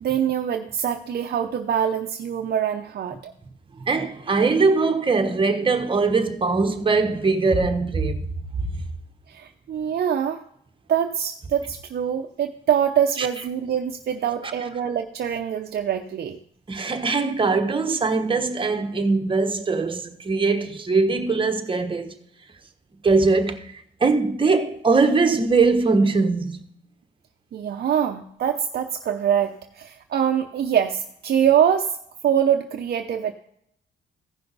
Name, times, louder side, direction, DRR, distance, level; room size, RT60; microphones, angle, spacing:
voice 1, 0.0-3.3 9.3-10.4 10.9-16.4 27.5-31.9 32.2-33.3, right 9 dB, 55° right, 0.7 m, -24 dB
voice 2, 3.8-8.3 8.6-8.7 13.2-13.3 16.7-22.2 23.0-26.6, right 4 dB, 25° right, 1.2 m, -21 dB
15.5 x 5.7 x 4.0 m
cardioid pair, 90°, 20 cm